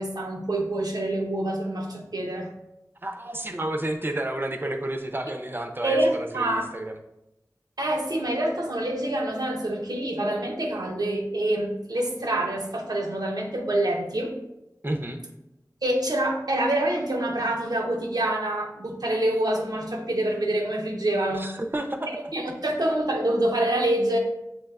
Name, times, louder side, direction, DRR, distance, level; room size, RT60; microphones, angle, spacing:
voice 1, 0.0-2.5 5.8-6.7 7.8-14.4 15.8-21.5 22.1-24.2, right 1 dB, 85° right, 1 dB, 0.7 m, -26 dB
voice 2, 3.0-7.0 14.8-15.2 21.3-22.3, right 1 dB, 35° right, 5 dB, 0.5 m, -31 dB
6.9 x 2.9 x 2.3 m, 0.88 s
wide cardioid pair, 40°, 7 cm